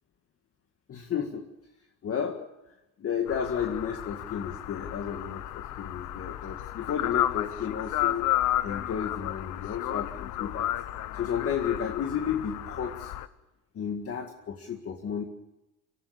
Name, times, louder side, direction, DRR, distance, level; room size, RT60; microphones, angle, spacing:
voice 1, 0.9-1.5 2.0-2.5 3.0-8.3 8.6-10.7 11.1-13.1 13.7-15.2, left 7 dB, 50° left, 3 dB, 2.0 m, -32 dB
sound 1, 3.3-13.3, left 13 dB, 80° left, 1.1 m, -32 dB
24.0 x 14.0 x 8.6 m, 0.94 s
cardioid pair, 110°, 30 cm